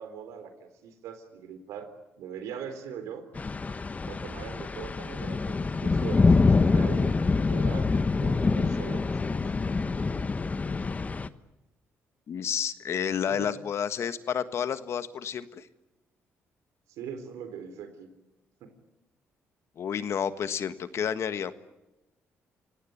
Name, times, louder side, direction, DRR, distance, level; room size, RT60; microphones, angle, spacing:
voice 1, 0.0-1.9 2.2-3.3 4.1-7.9 8.2-9.4 13.3-13.5 16.9-18.1 18.6-18.7, right 7 dB, 90° right, 10 dB, 3.7 m, -41 dB
sound 1, 3.3-11.3, left 4 dB, 30° left, 1.1 m, -25 dB
voice 2, 12.3-15.7 19.8-21.5, left 8 dB, 60° left, 12 dB, 1.5 m, -30 dB
29.0 x 17.5 x 9.4 m, 0.98 s
cardioid pair, 85°, 5 cm